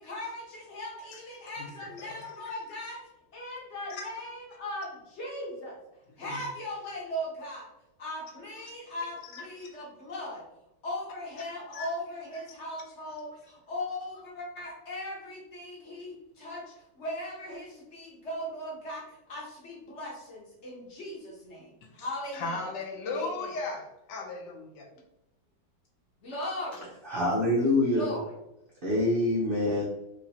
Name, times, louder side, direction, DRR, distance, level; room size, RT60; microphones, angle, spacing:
voice 1, 0.0-5.8 6.2-7.7 8.0-10.4 10.8-22.7 23.0-23.5 26.2-26.9 27.9-28.3, left 1 dB, 45° left, -3 dB, 1.0 m, -38 dB
voice 2, 1.6-1.9 3.9-4.0 6.2-6.4 9.2-9.4 11.7-11.9 22.0-22.1 22.3-24.9, left 3 dB, 75° left, 2 dB, 1.2 m, -36 dB
voice 3, 27.0-28.1 28.8-29.8, left 1 dB, 85° right, -5 dB, 0.4 m, -25 dB
3.2 x 2.8 x 2.7 m, 0.87 s
omnidirectional pair, 2.0 m